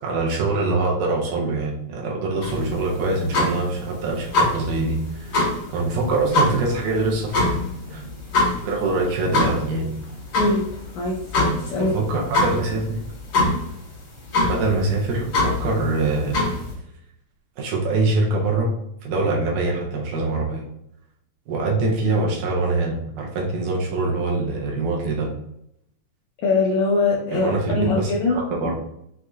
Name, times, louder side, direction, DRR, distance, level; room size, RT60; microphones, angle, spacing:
voice 1, 0.0-5.4 5.7-7.6 7.9-8.0 8.7-9.9 11.8-13.0 14.5-16.4 17.6-18.7 19.0-20.6 21.5-25.3 27.3-28.7, right 3 dB, 75° right, -2 dB, 2.3 m, -24 dB
sound 1, 2.4-16.7, left 2 dB, 60° left, 2.4 m, -25 dB
voice 2, 10.4-10.7 10.9-11.9 26.4-28.4, left 3 dB, 80° left, -2 dB, 1.6 m, -22 dB
6.2 x 2.8 x 2.3 m, 0.76 s
omnidirectional pair, 4.0 m